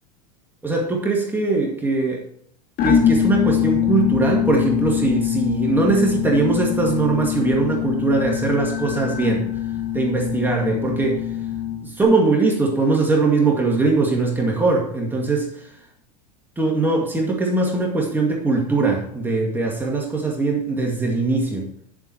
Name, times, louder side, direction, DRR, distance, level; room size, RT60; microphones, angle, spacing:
voice 1, 0.6-2.2 2.8-9.5 9.9-11.4 11.8-15.8 16.6-21.7, right 3 dB, 10° right, -1 dB, 2.0 m, -21 dB
sound 1, 2.8-12.0, left 10 dB, 45° left, 2.1 m, -23 dB
10.5 x 7.5 x 4.5 m, 0.68 s
supercardioid pair, 125°, 21 cm